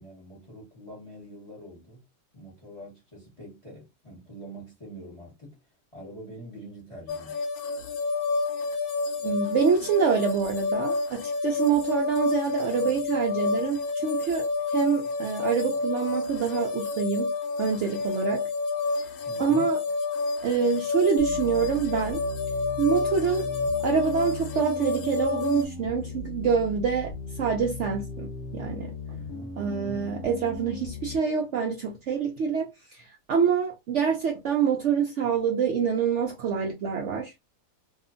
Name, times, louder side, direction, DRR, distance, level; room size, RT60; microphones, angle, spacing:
voice 1, 0.0-2.1 2.3-5.6 5.9-7.4 19.2-19.7 29.1-30.1, right 1 dB, 20° left, 1.0 m, -44 dB
sound 1, 7.1-25.6, left 3 dB, 70° left, 1.1 m, -29 dB
voice 2, 9.2-17.3 17.6-18.5 18.9-19.1 19.4-19.8 20.4-22.2 22.8-23.5 23.8-28.9 29.6-37.3, right 6 dB, 75° right, 0.6 m, -26 dB
sound 2, 21.2-31.2, left 2 dB, 50° left, 0.9 m, -38 dB
2.7 x 2.4 x 2.5 m
omnidirectional pair, 1.7 m